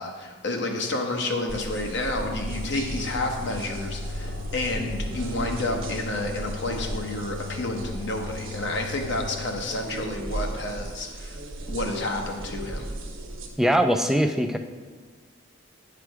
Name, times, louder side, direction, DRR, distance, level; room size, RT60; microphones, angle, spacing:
voice 1, 0.0-11.4 11.7-12.9, left 2 dB, 60° left, 2 dB, 1.0 m, -30 dB
sound 1, 1.5-13.5, right 1 dB, 70° right, 1.2 m, -36 dB
sound 2, 2.2-9.5, left 5 dB, 40° left, 0.7 m, -38 dB
voice 2, 13.6-14.6, equal, ahead, 6 dB, 0.3 m, -21 dB
9.2 x 4.9 x 4.8 m, 1.4 s
head